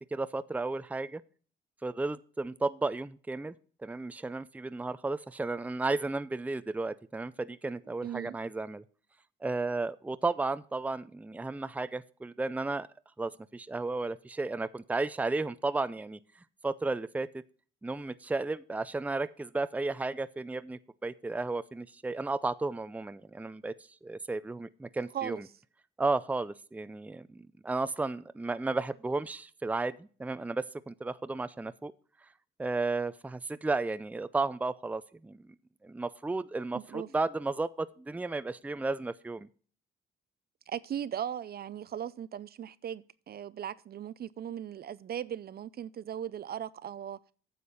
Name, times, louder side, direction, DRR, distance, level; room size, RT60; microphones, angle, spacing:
voice 1, 0.1-1.2 1.8-3.6 3.8-8.8 9.4-12.9 13.2-16.2 16.6-17.4 17.8-23.7 24.0-25.4 26.0-31.9 32.6-35.5 35.8-39.5, right 3 dB, 5° right, 0.5 m, -33 dB
voice 2, 8.0-8.4 25.1-25.4 36.7-37.1 40.7-47.2, right 9 dB, 50° right, 0.6 m, -38 dB
9.5 x 6.7 x 5.6 m
cardioid pair, 90°, 20 cm